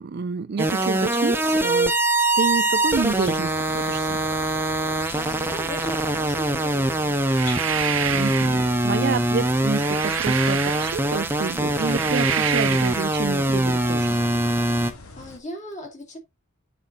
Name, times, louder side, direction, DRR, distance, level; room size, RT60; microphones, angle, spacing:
voice 1, 0.0-1.9 2.3-4.2 8.1-14.2, right 5 dB, 50° right, 0.4 m, -28 dB
Atari Punk Console, 0.6-14.9, right 1 dB, 10° right, 0.8 m, -23 dB
sound 1, 2.9-15.4, left 3 dB, 90° left, 2.0 m, -43 dB
voice 2, 4.8-7.3 15.2-16.2, equal, 35° left, 2.5 m, -37 dB
sound 2, 7.2-8.7 9.5-11.2 11.7-13.1, right 9 dB, 70° right, 0.8 m, -28 dB
8.4 x 5.3 x 3.8 m
head